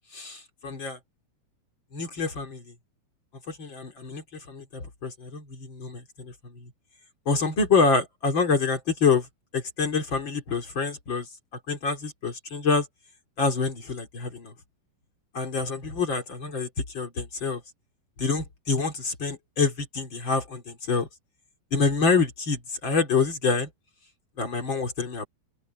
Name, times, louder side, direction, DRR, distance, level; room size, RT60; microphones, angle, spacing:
voice 1, 0.1-1.0 1.9-2.7 3.5-6.7 7.3-9.3 9.5-11.3 11.7-12.9 13.4-14.5 15.3-16.7 16.9-17.6 18.2-21.1 21.7-23.7 24.4-25.2, left 4 dB, 30° left, 2.4 m, -26 dB
open air
omnidirectional pair, 5.7 m